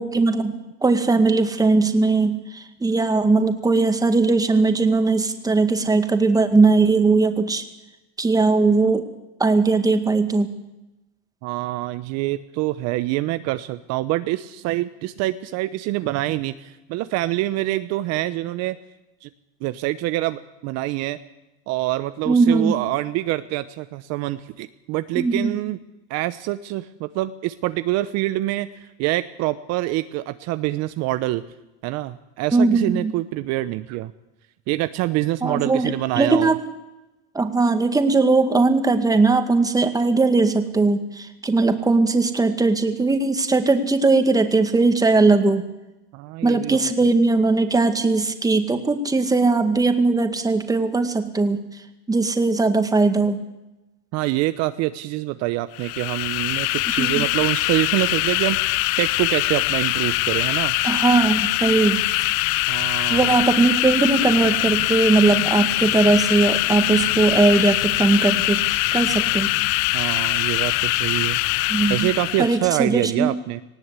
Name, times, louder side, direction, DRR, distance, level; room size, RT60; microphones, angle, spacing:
voice 1, 0.0-7.6 8.2-9.0 9.4-10.5 22.3-22.7 25.1-25.6 32.5-33.1 35.4-36.6 37.3-45.6 46.4-51.6 52.1-53.4 57.0-57.2 60.8-62.1 63.1-68.6 68.9-69.5 71.7-72.1 72.4-73.3, right 3 dB, 10° right, 8 dB, 2.0 m, -19 dB
voice 2, 11.4-18.8 19.2-19.3 19.6-21.2 21.7-25.8 26.1-31.4 31.8-34.1 34.7-36.5 46.1-46.8 54.1-60.7 62.7-63.4 69.9-71.4 71.9-73.6, right 16 dB, 50° right, 12 dB, 0.9 m, -25 dB
sound 1, 55.7-72.6, left 20 dB, 55° left, 0.7 m, -23 dB
19.0 x 17.0 x 8.3 m, 0.99 s
supercardioid pair, 115°, 33 cm